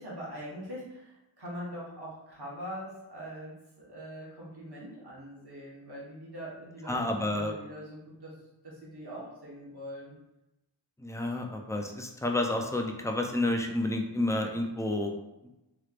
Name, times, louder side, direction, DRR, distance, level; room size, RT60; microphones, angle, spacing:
voice 1, 0.0-8.4 8.6-10.2, equal, 50° right, -6 dB, 1.4 m, -43 dB
voice 2, 6.9-7.5 11.0-15.1, left 1 dB, 5° left, 3 dB, 0.4 m, -30 dB
3.1 x 3.0 x 2.5 m, 0.95 s
cardioid pair, 40°, 49 cm